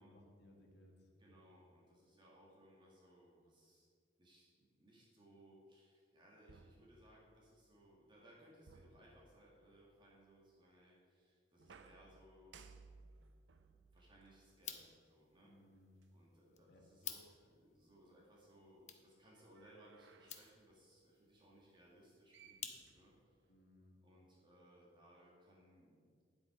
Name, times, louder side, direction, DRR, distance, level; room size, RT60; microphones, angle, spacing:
voice 1, 0.0-1.4 15.4-15.9 16.7-16.8 23.5-24.0, left 1 dB, 65° left, 1 dB, 1.6 m, -64 dB
voice 2, 1.2-3.9 4.2-12.6 13.7-15.5 16.1-23.4 24.0-26.1, right 1 dB, 25° right, -4 dB, 1.8 m, -65 dB
sound 1, 6.5-7.6 8.7-9.8 11.6-15.2 16.0-16.1 19.4-20.7 22.0-22.1 22.3-23.6, right 4 dB, 75° right, 0.6 m, -63 dB
sound 2, 14.5-23.2, left 9 dB, 40° left, 0.8 m, -55 dB
9.9 x 7.7 x 4.9 m, 2.1 s
head